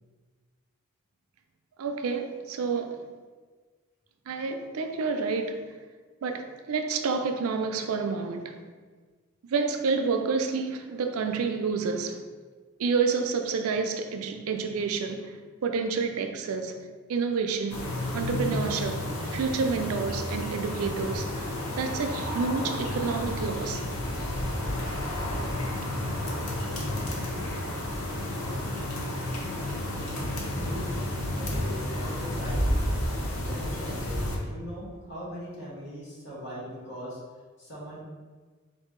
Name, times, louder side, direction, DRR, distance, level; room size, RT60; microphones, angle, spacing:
voice 1, 1.8-3.0 4.3-5.6 6.2-8.6 9.4-12.2 12.8-21.4 21.7-23.8, right 5 dB, 85° right, 0.4 m, -29 dB
sound 1, 17.7-34.4, left 1 dB, 80° left, 0.7 m, -31 dB
voice 2, 28.4-28.7 30.5-30.8 31.3-32.7 33.3-37.2 37.6-38.0, equal, 55° left, 1.3 m, -40 dB
3.8 x 2.7 x 3.6 m
head